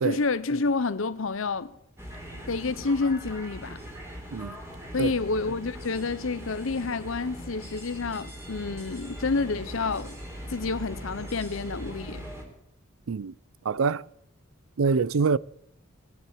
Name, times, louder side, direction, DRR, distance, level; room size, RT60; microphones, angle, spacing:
voice 1, 0.0-1.7 2.5-3.8 4.9-10.2 10.5-12.2, left 4 dB, 70° left, 0.8 m, -29 dB
sound 1, 2.0-12.4, equal, 15° right, 4.0 m, -40 dB
voice 2, 13.7-14.0 14.8-15.4, right 5 dB, 75° right, 0.5 m, -24 dB
19.0 x 10.0 x 7.6 m
head